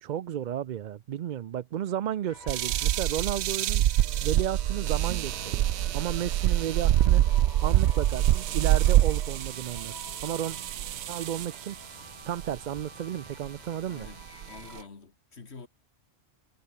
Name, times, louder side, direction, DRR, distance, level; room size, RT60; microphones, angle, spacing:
voice 1, 0.0-3.8 4.2-5.6 5.9-7.2 7.6-10.6 11.1-11.8 12.2-14.1, right 10 dB, 60° right, 0.5 m, -33 dB
sound 1, 2.3-14.9, left 2 dB, 40° left, 3.4 m, -49 dB
sound 2, 2.5-11.6 12.4-12.8 13.5-13.6 14.0-14.8, right 13 dB, 75° right, 0.9 m, -25 dB
sound 3, 4.0-9.4, right 2 dB, 35° right, 2.4 m, -51 dB
voice 2, 13.9-15.7, left 4 dB, 70° left, 2.2 m, -47 dB
omnidirectional pair, 1.1 m